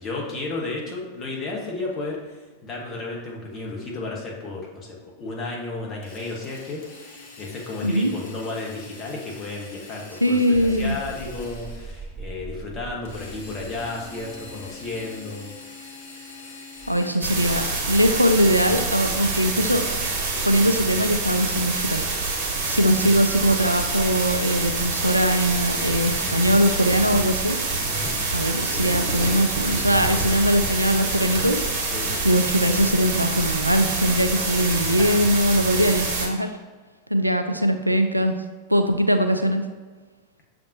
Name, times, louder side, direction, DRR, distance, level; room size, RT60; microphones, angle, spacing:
voice 1, 0.0-2.2 2.6-15.5 27.8-28.1 31.9-32.1 34.7-34.8, left 3 dB, 30° left, -2 dB, 1.1 m, -33 dB
Drill, 6.0-12.1 13.1-17.7, left 3 dB, 50° left, 0.9 m, -44 dB
voice 2, 10.2-11.0 16.9-19.8 20.5-27.6 28.3-31.6 32.2-36.5 37.1-38.4 38.7-39.6, equal, 85° right, 7 dB, 0.3 m, -21 dB
sound 1, 10.5-15.4 16.8-17.0, right 4 dB, 10° right, 1.0 m, -41 dB
sound 2, 17.2-36.3, right 3 dB, 40° right, 1.0 m, -26 dB
7.1 x 2.5 x 2.7 m, 1.4 s
figure-of-eight pair, 90°, 0 cm